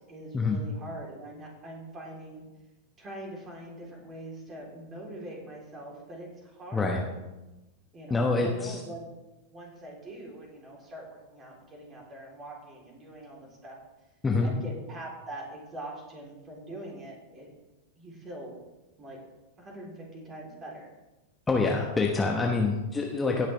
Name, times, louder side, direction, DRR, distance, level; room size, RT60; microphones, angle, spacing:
voice 1, 0.1-2.4 3.0-7.0 7.9-9.1 9.5-13.8 14.4-17.5 18.0-18.5 19.0-19.2 19.6-20.9 22.4-22.5, right 1 dB, 25° right, -1 dB, 3.6 m, -43 dB
voice 2, 8.1-8.8 14.2-14.5 21.5-23.5, left 3 dB, 15° left, 0 dB, 1.2 m, -26 dB
18.0 x 6.5 x 3.4 m, 1.1 s
figure-of-eight pair, 90°, 0 cm